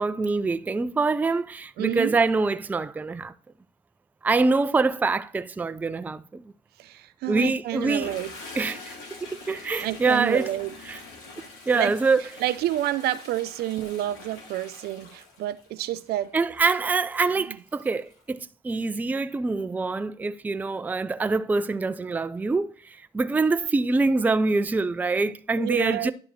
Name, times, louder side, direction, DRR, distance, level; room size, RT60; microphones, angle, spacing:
voice 1, 0.0-3.3 4.2-6.4 7.2-8.1 8.5-10.5 10.8-11.0 11.7-12.6 16.3-26.1, right 3 dB, 10° right, 0.3 m, -25 dB
voice 2, 1.8-2.2 6.8-8.3 9.8-10.7 11.7-11.9 12.4-16.3 25.6-26.1, right 14 dB, 70° right, 0.5 m, -29 dB
Toilet flush, 7.6-18.2, left 3 dB, 90° left, 2.7 m, -45 dB
10.5 x 4.9 x 3.1 m
cardioid pair, 110°, 17 cm